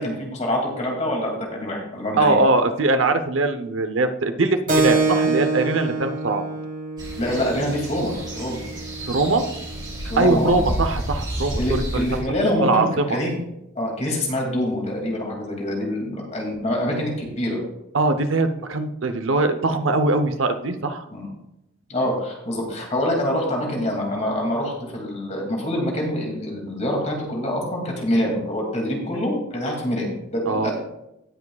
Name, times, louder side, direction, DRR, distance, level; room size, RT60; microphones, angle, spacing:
voice 1, 0.0-2.4 7.2-8.6 10.1-10.6 11.6-13.3 13.7-17.6 21.1-21.3 21.9-30.7, left 1 dB, 35° left, 0 dB, 2.5 m, -25 dB
voice 2, 2.2-6.4 9.1-9.4 10.2-11.6 11.9-12.0 12.6-13.2 17.9-21.1 30.5-30.7, right 3 dB, 85° right, 8 dB, 0.8 m, -21 dB
Keyboard (musical), 4.7-9.8, right 3 dB, 45° right, 1.4 m, -26 dB
sound 1, 7.0-12.2, equal, 20° right, 3.7 m, -31 dB
17.5 x 7.4 x 2.4 m, 0.87 s
head